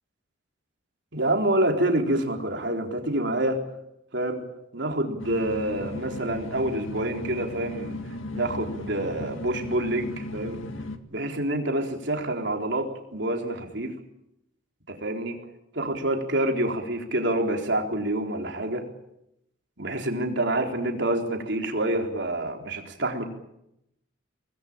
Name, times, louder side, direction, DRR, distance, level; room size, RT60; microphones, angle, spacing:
voice 1, 1.1-3.6 4.1-4.5 4.7-8.0 8.3-10.6 11.1-14.0 14.9-15.4 15.7-18.8 19.8-23.2, right 1 dB, 60° right, 3 dB, 4.1 m, -27 dB
sound 1, 5.2-11.0, left 1 dB, 80° left, 2.0 m, -36 dB
25.5 x 20.0 x 8.9 m, 0.82 s
head